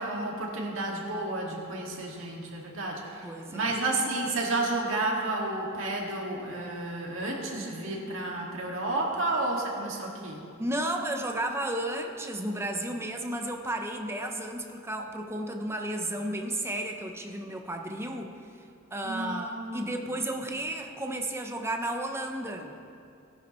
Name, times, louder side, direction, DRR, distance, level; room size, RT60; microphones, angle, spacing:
voice 1, 0.0-10.4 19.0-19.9, right 2 dB, 70° right, -2 dB, 2.0 m, -31 dB
voice 2, 3.2-3.8 10.6-18.3 18.9-22.8, right 1 dB, 15° right, 3 dB, 0.8 m, -33 dB
17.5 x 10.5 x 3.1 m, 2.5 s
head